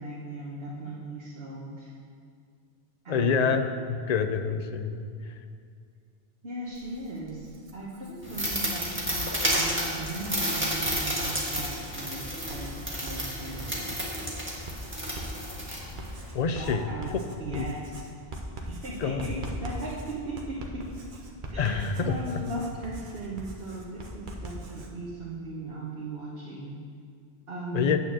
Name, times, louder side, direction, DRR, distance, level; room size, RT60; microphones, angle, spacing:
voice 1, 0.0-1.9 3.0-3.5 6.4-14.0 16.4-17.1 17.4-18.0 18.7-20.9 21.5-26.8 27.5-27.9, right 2 dB, 70° right, -7 dB, 1.5 m, -38 dB
voice 2, 3.1-3.6 3.9-5.1 16.3-16.9 17.5-17.6 19.0-19.3 21.6-22.4 27.7-28.0, left 6 dB, 50° left, 8 dB, 0.6 m, -27 dB
Writing, 6.7-8.3 8.9-24.9, right 1 dB, 55° right, 1.1 m, -42 dB
sound 1, 8.2-16.3, equal, 10° right, 1.6 m, -31 dB
9.2 x 4.5 x 7.4 m, 2.2 s
omnidirectional pair, 1.0 m